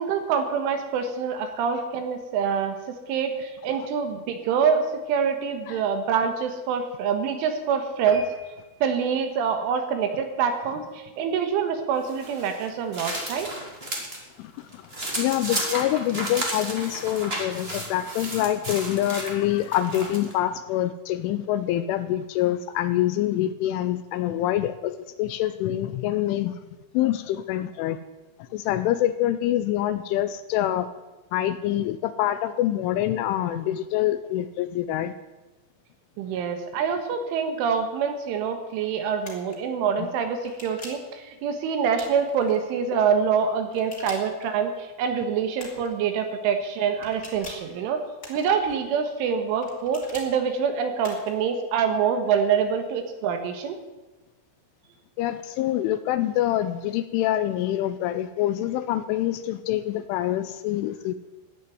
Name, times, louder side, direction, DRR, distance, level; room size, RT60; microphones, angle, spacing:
voice 1, 0.0-2.8 3.1-8.3 8.8-13.5 36.2-48.0 48.3-53.8, right 6 dB, 75° right, 6 dB, 3.8 m, -25 dB
sound 1, 8.1-10.8 11.3-11.5 11.9-12.0 12.3-12.4 12.7-12.8, right 2 dB, 40° right, 2.2 m, -45 dB
sound 2, 12.0-14.2 14.6-20.3, right 1 dB, 25° right, 1.3 m, -33 dB
voice 2, 14.4-26.6 26.9-28.0 28.5-30.9 31.3-35.1 40.0-40.1 55.2-61.1, left 13 dB, 80° left, 12 dB, 2.9 m, -26 dB
sound 3, 39.2-39.6 40.4-41.1 41.9-42.6 43.7-44.5 45.6-45.9 47.0-47.7 48.2-48.8 49.6-50.3 51.0-51.4, left 2 dB, 20° left, 2.8 m, -43 dB
14.5 x 9.6 x 9.4 m, 1.1 s
omnidirectional pair, 5.9 m